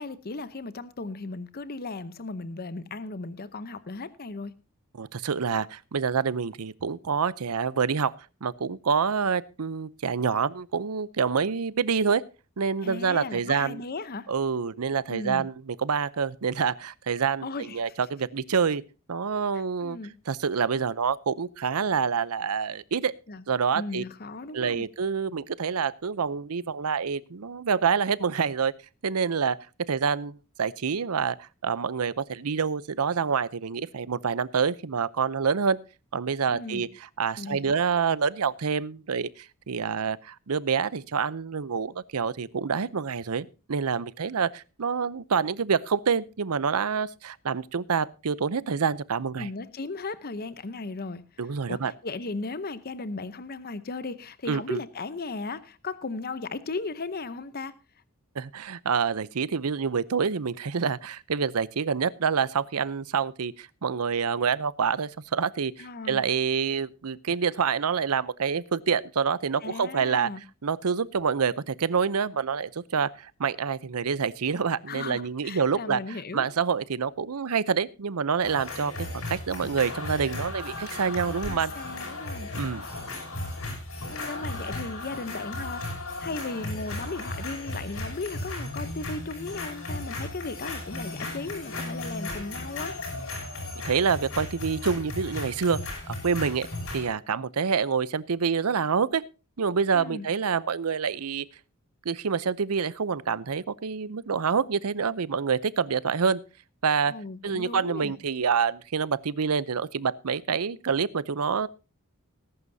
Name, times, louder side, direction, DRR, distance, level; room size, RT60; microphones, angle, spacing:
voice 1, 0.0-4.5 12.8-14.3 15.1-15.5 17.4-17.8 19.8-20.1 23.3-23.4 23.7-24.9 36.5-36.9 37.4-37.8 49.4-51.2 51.7-57.7 65.8-66.2 69.6-70.4 74.9-76.4 81.3-82.5 84.1-93.0 99.9-100.3 107.1-108.1, left 3 dB, 45° left, 0.8 m, -36 dB
voice 2, 4.9-8.1 8.4-12.2 12.6-13.8 14.3-18.8 19.1-20.0 20.3-23.1 23.5-24.0 24.5-28.7 29.0-29.6 29.9-35.8 36.1-49.5 51.4-51.9 54.5-54.8 58.4-70.3 70.6-81.7 82.5-82.8 93.8-96.7 96.9-99.2 99.6-101.4 102.0-106.4 106.8-107.2 107.4-111.7, right 6 dB, 80° right, 0.6 m, -27 dB
sound 1, 78.4-97.1, left 2 dB, 70° left, 6.3 m, -35 dB
19.5 x 11.0 x 2.7 m
head